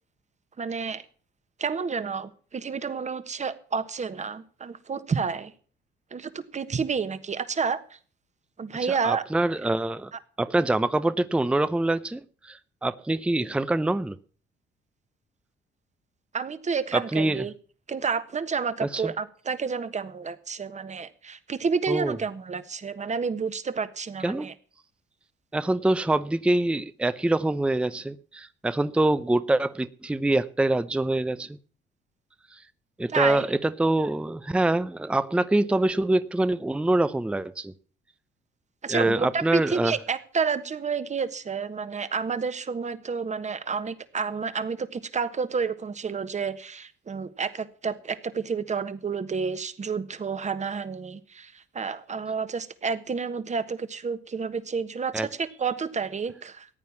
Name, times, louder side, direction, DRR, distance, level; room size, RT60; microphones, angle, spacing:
voice 1, 0.6-1.0 1.6-5.5 6.1-7.8 8.6-9.2 16.3-17.5 17.9-24.5 33.1-33.4 38.8-56.7, right 5 dB, 35° right, 1.3 m, -30 dB
voice 2, 8.8-10.1 10.4-14.2 16.9-17.4 18.8-19.1 21.9-22.2 24.2-24.5 25.5-31.6 32.5-32.6 33.0-37.7 38.9-40.0 55.1-55.3, right 2 dB, 5° right, 0.5 m, -25 dB
14.5 x 9.2 x 7.1 m
cardioid pair, 90°, 20 cm